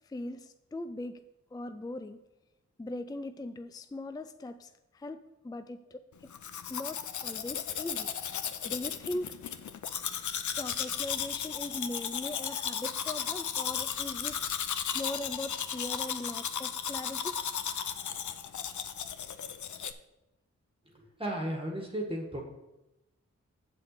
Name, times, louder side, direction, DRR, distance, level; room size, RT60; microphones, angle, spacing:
voice 1, 0.1-1.2 1.5-2.2 2.8-5.2 5.4-6.0 6.7-8.1 8.6-9.4 10.5-14.4 14.9-17.4, left 2 dB, 15° left, 11 dB, 0.4 m, -39 dB
Domestic sounds home sounds, 6.3-19.9, left 8 dB, 75° left, 0.6 m, -35 dB
voice 2, 20.9-22.4, right 1 dB, 20° right, 0 dB, 1.7 m, -35 dB
8.0 x 4.4 x 6.6 m, 0.97 s
cardioid pair, 50°, 30 cm